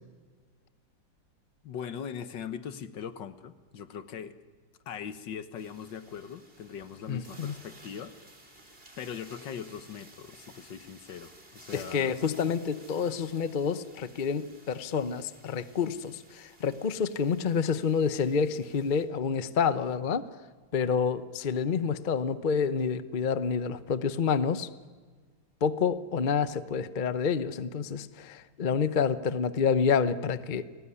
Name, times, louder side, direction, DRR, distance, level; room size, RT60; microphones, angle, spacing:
voice 1, 1.6-4.3 4.9-8.6 9.0-12.2, left 7 dB, 75° left, 12 dB, 1.9 m, -41 dB
sound 1, 5.6-19.1, right 2 dB, 30° right, 3.6 m, -55 dB
voice 2, 7.1-7.5 11.7-20.3 20.7-24.7 25.6-30.6, left 6 dB, 35° left, 13 dB, 0.8 m, -28 dB
29.0 x 19.5 x 9.9 m, 1.5 s
omnidirectional pair, 2.0 m